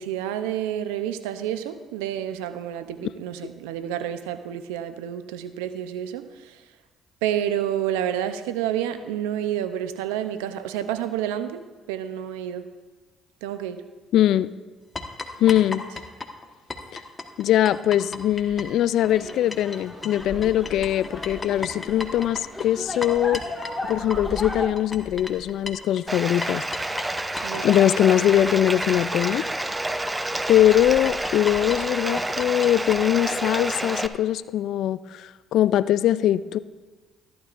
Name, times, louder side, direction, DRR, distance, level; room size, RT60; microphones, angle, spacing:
voice 1, 0.0-6.6 7.2-12.7 13.4-13.8 27.4-27.7, right 10 dB, 90° right, 11 dB, 0.6 m, -29 dB
voice 2, 14.1-14.5 15.4-15.9 16.9-17.0 17.4-23.4 23.9-26.6 27.6-29.4 30.5-36.6, left 12 dB, 70° left, 17 dB, 0.3 m, -21 dB
sound 1, 15.0-19.8 20.0-33.0, left 3 dB, 30° left, 1.3 m, -36 dB
sound 2, 19.0-24.7, left 1 dB, 10° left, 1.9 m, -36 dB
Bathtub (filling or washing), 26.1-34.1, right 1 dB, 15° right, 0.6 m, -29 dB
14.0 x 11.5 x 2.5 m, 1.3 s
hypercardioid pair, 60°, 0 cm